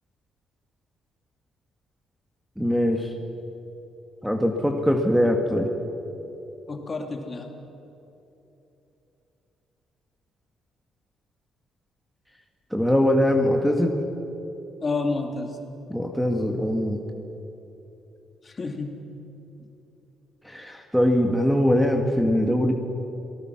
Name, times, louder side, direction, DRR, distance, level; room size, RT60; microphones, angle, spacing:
voice 1, 2.6-3.1 4.2-5.7 12.7-14.0 15.9-17.0 20.4-22.7, equal, ahead, 3 dB, 2.0 m, -22 dB
voice 2, 6.7-7.5 14.8-15.6 18.4-19.1 19.6-19.7, left 3 dB, 35° left, 3 dB, 2.9 m, -30 dB
27.5 x 19.0 x 6.1 m, 3.0 s
cardioid pair, 90°, 0 cm